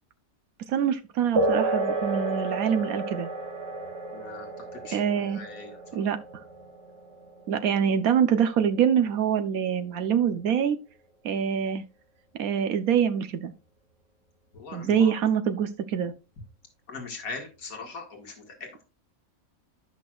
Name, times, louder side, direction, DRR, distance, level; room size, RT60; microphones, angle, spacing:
voice 1, 0.7-3.3 4.9-5.4 5.9-6.2 7.5-10.8 11.2-11.8 12.4-13.5 14.7-16.1, right 8 dB, 85° right, 1.2 m, -25 dB
sound 1, 1.4-9.4, right 2 dB, 55° right, 2.0 m, -32 dB
voice 2, 4.1-5.8 14.5-15.1 16.9-18.8, left 4 dB, 85° left, 2.3 m, -41 dB
14.0 x 6.2 x 2.3 m
omnidirectional pair, 1.5 m